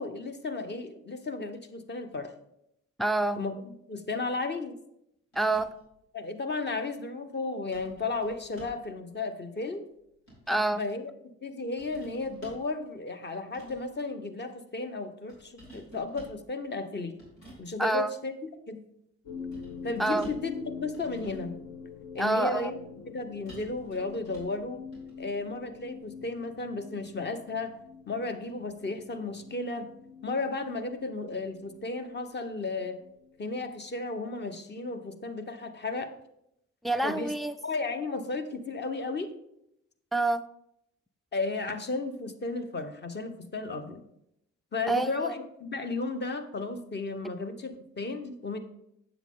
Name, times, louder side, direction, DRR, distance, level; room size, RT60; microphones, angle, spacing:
voice 1, 0.0-2.3 3.4-4.7 6.1-9.8 10.8-11.1 11.4-17.2 17.6-18.3 18.7-18.8 19.8-20.5 20.8-21.6 22.1-22.8 23.1-24.8 25.2-27.7 28.1-29.9 30.2-33.0 33.4-36.1 37.0-37.3 37.6-39.3 41.3-44.0 44.7-48.6, left 3 dB, 25° left, 1.0 m, -34 dB
voice 2, 3.0-3.4 5.4-5.7 10.5-10.8 17.8-18.1 20.0-20.3 22.2-22.7 36.8-37.5 40.1-40.4 44.9-45.3, right 2 dB, ahead, 0.3 m, -27 dB
sound 1, 5.3-6.0 7.7-8.9 9.9-10.8 11.8-12.7 13.4-14.0 15.3-16.4 17.2-17.7 19.5-20.6 20.9-21.6 23.5-24.6 24.9-25.1, right 1 dB, 85° left, 2.9 m, -50 dB
sound 2, 19.2-34.1, left 5 dB, 55° left, 1.4 m, -46 dB
7.7 x 7.2 x 3.7 m
hypercardioid pair, 50°, 38 cm